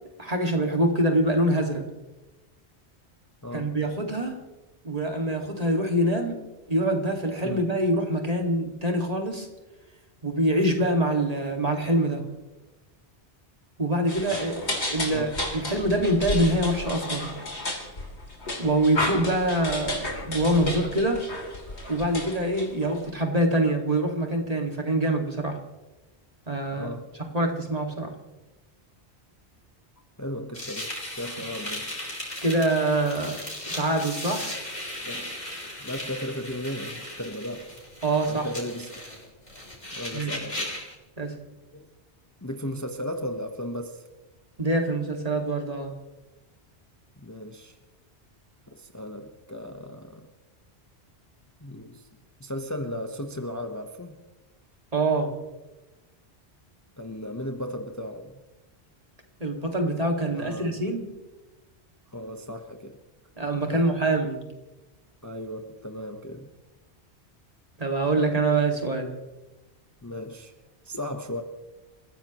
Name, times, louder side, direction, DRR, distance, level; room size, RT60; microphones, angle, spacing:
voice 1, 0.2-1.9 3.5-4.4 4.8-6.4 6.7-9.5 10.2-12.2 13.8-17.3 18.6-21.2 21.9-25.6 26.5-26.9 27.3-28.1 32.4-33.4 33.7-34.6 38.0-38.5 40.1-40.3 41.2-41.3 44.6-45.9 54.9-55.3 59.4-61.1 63.4-64.4 67.8-69.1, right 1 dB, 35° right, 2 dB, 2.2 m, -25 dB
sound 1, 14.1-23.1, left 2 dB, 75° left, 3.4 m, -33 dB
voice 2, 26.7-27.0 30.2-31.9 32.4-32.5 35.0-35.4 35.8-37.8 38.3-39.0 39.9-40.7 41.7-41.9 42.4-44.0 47.2-47.8 48.7-50.3 51.6-52.1 52.4-54.2 57.0-58.4 60.3-60.8 62.1-63.0 63.7-63.8 65.2-66.5 70.0-70.5 70.8-71.4, left 1 dB, 15° left, 4 dB, 1.0 m, -36 dB
sound 2, 30.5-40.9, left 1 dB, 40° left, 4.5 m, -37 dB
29.0 x 15.5 x 3.1 m, 1.1 s
omnidirectional pair, 1.1 m